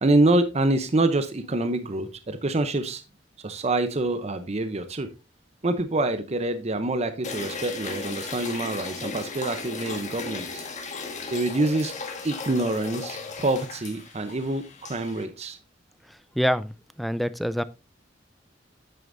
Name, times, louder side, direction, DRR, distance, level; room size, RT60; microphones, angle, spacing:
voice 1, 0.0-3.0 3.4-5.1 5.6-10.6 11.3-11.9 12.2-15.6, right 2 dB, 35° right, 0.7 m, -26 dB
sound 1, 7.2-15.2, left 4 dB, 40° left, 1.7 m, -36 dB
voice 2, 16.4-16.7 17.0-17.6, equal, ahead, 0.4 m, -25 dB
9.3 x 8.8 x 2.6 m
head